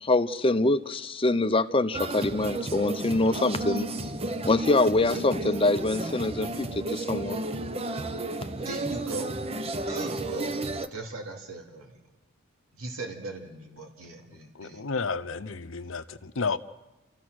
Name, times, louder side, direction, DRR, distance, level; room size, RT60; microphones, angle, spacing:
voice 1, 0.0-3.9 4.4-7.4, left 2 dB, 25° left, 0.7 m, -24 dB
sound 1, 1.9-10.9, right 2 dB, 25° right, 0.8 m, -33 dB
voice 2, 8.6-9.3 9.9-10.6 10.9-12.0 12.7-14.8, right 2 dB, 85° right, 2.7 m, -38 dB
voice 3, 14.5-16.6, left 4 dB, 65° left, 0.8 m, -31 dB
29.0 x 14.5 x 6.3 m
head